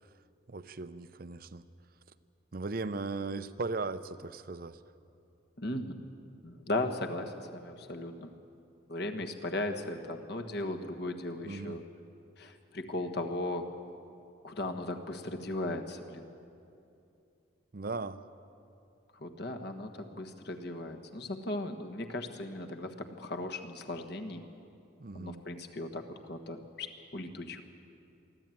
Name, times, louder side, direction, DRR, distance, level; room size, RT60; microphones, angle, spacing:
voice 1, 0.5-1.6 2.5-4.8 11.4-11.8 17.7-18.2 25.0-25.4, right 3 dB, 45° right, 13 dB, 0.6 m, -37 dB
voice 2, 5.6-5.9 6.4-8.3 8.9-11.8 12.4-13.7 14.4-16.3 19.1-24.5 25.1-27.6, left 2 dB, 55° left, 5 dB, 1.4 m, -37 dB
23.5 x 14.0 x 9.2 m, 2.7 s
head